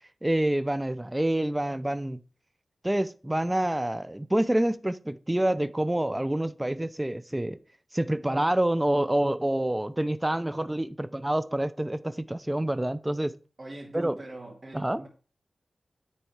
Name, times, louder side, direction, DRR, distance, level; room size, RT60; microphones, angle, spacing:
voice 1, 0.2-2.2 2.8-7.6 7.9-13.3 13.9-14.1 14.7-15.0, right 1 dB, 15° right, 0.6 m, -27 dB
voice 2, 13.6-15.1, right 1 dB, 35° right, 2.5 m, -42 dB
10.0 x 4.1 x 4.7 m
wide cardioid pair, 60°, 0 cm